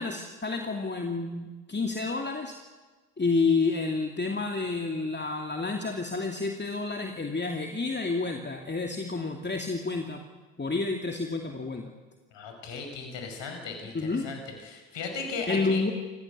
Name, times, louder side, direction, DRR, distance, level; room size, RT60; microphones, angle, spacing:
voice 1, 0.0-2.6 3.2-10.2 10.6-11.9 13.9-14.3 15.5-15.9, left 3 dB, 20° left, 3 dB, 2.6 m, -29 dB
voice 2, 12.3-15.8, left 4 dB, 60° left, 4 dB, 5.7 m, -37 dB
28.5 x 16.0 x 8.2 m, 1.3 s
hypercardioid pair, 55°, 48 cm